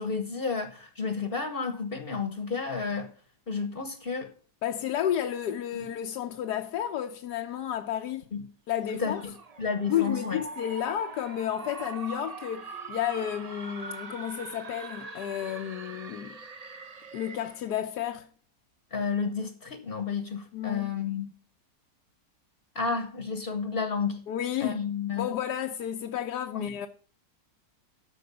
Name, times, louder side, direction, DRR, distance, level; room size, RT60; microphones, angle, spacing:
voice 1, 0.0-3.1 3.5-4.3 5.7-5.9 8.3-8.4 8.9-9.3 9.6-10.4 18.9-21.3 22.7-24.2 24.6-25.3 26.5-26.7, left 5 dB, 35° left, 1.1 m, -31 dB
voice 2, 4.6-8.3 8.7-9.2 9.9-16.4 17.1-18.3 20.5-20.9 24.3-24.8 25.2-26.9, left 10 dB, 70° left, 1.2 m, -31 dB
sound 1, 8.8-17.7, right 4 dB, 45° right, 0.5 m, -42 dB
13.0 x 4.7 x 6.8 m
omnidirectional pair, 1.9 m